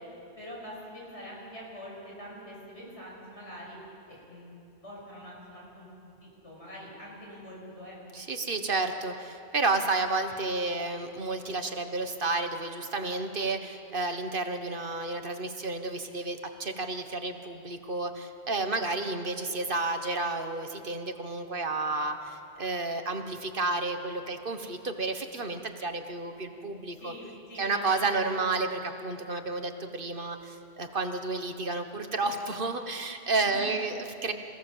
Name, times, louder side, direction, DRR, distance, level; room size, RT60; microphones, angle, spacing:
voice 1, 0.4-3.8 4.1-4.5 4.8-5.9 6.2-8.0 27.0-28.8 33.4-33.8, equal, 85° left, -4 dB, 8.1 m, -44 dB
voice 2, 8.1-27.1 27.6-34.3, right 3 dB, 50° right, 7 dB, 1.5 m, -31 dB
28.0 x 17.0 x 7.4 m, 2.7 s
omnidirectional pair, 1.1 m